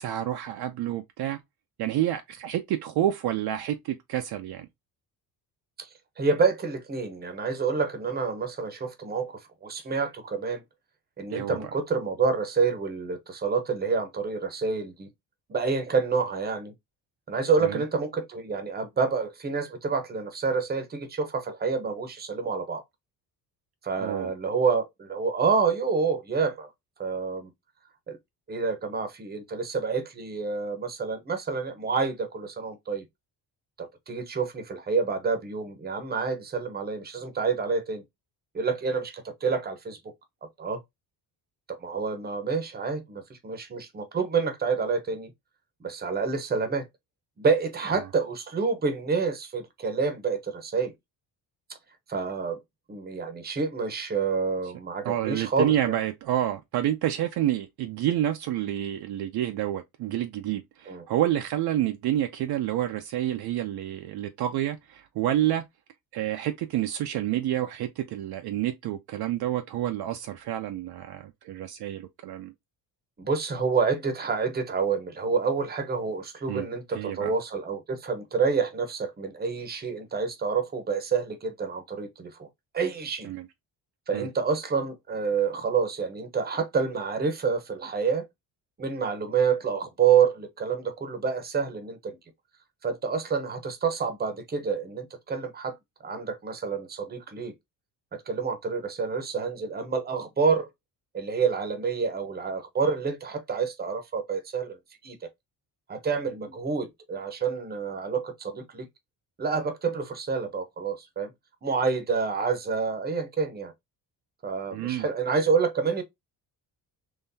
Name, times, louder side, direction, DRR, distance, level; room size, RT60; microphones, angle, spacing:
voice 1, 0.0-1.4 1.8-4.7 11.3-11.6 17.6-17.8 24.0-24.3 55.0-65.6 66.1-72.5 76.5-76.7 76.9-77.3 83.2-83.5 84.1-84.3 114.7-115.1, right 12 dB, 65° right, 0.6 m, -29 dB
voice 2, 6.2-10.6 11.2-15.1 15.5-16.7 17.3-22.8 23.8-26.7 27.0-27.5 28.1-28.2 28.5-33.0 33.8-38.0 38.5-40.0 40.6-40.8 41.8-45.3 45.8-46.8 47.4-50.9 52.1-52.6 52.9-55.7 60.9-61.0 73.2-82.5 82.7-83.3 84.1-88.3 88.8-92.2 92.8-95.7 96.0-97.5 98.3-100.7 101.1-104.8 105.0-105.2 105.9-108.8 109.4-111.3 111.6-113.7 114.4-116.0, right 5 dB, 25° right, 0.8 m, -28 dB
3.8 x 3.1 x 2.7 m
cardioid pair, 170°, 41 cm